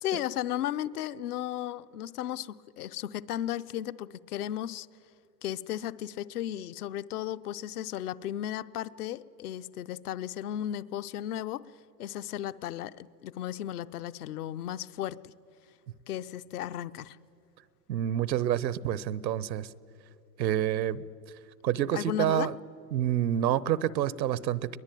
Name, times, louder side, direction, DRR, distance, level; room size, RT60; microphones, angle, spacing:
voice 1, 0.0-4.9 5.4-11.7 12.0-15.3 16.1-17.2 21.9-22.5, left 12 dB, 60° left, 0.8 m, -35 dB
voice 2, 17.9-19.7 20.4-21.0 21.6-22.5 22.9-24.8, right 11 dB, 85° right, 0.9 m, -28 dB
21.5 x 20.5 x 9.1 m
hypercardioid pair, 140°, 50 cm